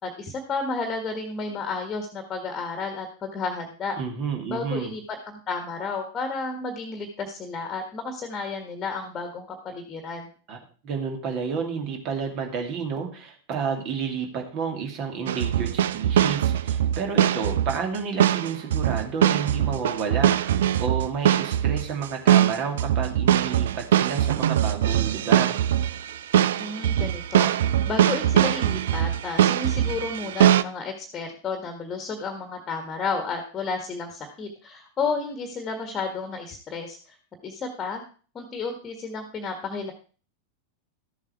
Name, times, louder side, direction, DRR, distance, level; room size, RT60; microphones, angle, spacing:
voice 1, 0.0-4.0 4.5-10.3 26.6-27.5 27.9-37.0 37.4-38.0 38.3-39.9, left 4 dB, 25° left, 6 dB, 1.6 m, -32 dB
voice 2, 4.0-4.9 10.5-10.6 10.8-25.6, right 6 dB, 40° right, 4 dB, 2.5 m, -30 dB
sound 1, 15.3-30.6, right 11 dB, 60° right, 0.4 m, -22 dB
13.5 x 7.4 x 4.6 m, 0.39 s
figure-of-eight pair, 90°, 0 cm